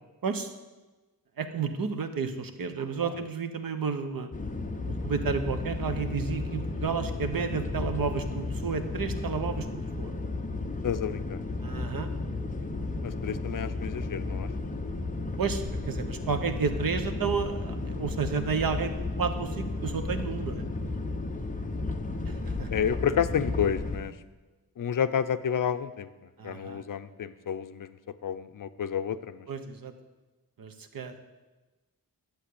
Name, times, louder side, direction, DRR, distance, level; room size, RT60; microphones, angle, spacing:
voice 1, 0.2-0.5 1.4-4.3 4.9-10.1 11.6-12.1 15.4-20.7 22.2-22.7 26.4-26.8 29.5-29.9 30.6-31.2, right 5 dB, 70° right, 8 dB, 1.1 m, -31 dB
sound 1, 4.3-24.0, left 3 dB, 20° left, 0.9 m, -33 dB
voice 2, 10.8-11.4 13.0-14.5 22.7-24.1 24.8-26.1 26.4-28.0 28.2-29.5, left 8 dB, 65° left, 11 dB, 0.7 m, -30 dB
11.5 x 8.2 x 8.5 m, 1.2 s
wide cardioid pair, 180°, 35 cm